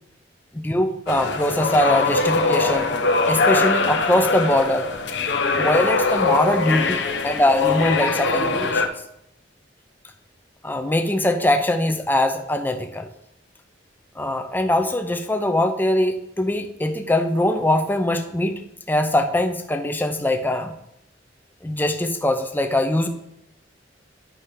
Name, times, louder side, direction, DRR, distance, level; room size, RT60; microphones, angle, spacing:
voice 1, 0.5-3.0 3.3-4.9 5.6-8.9 10.6-13.1 14.2-20.8 21.6-23.1, left 1 dB, 10° left, 6 dB, 0.6 m, -22 dB
sound 1, 1.1-8.9, left 3 dB, 75° left, 0.8 m, -22 dB
9.9 x 4.3 x 5.1 m, 0.80 s
head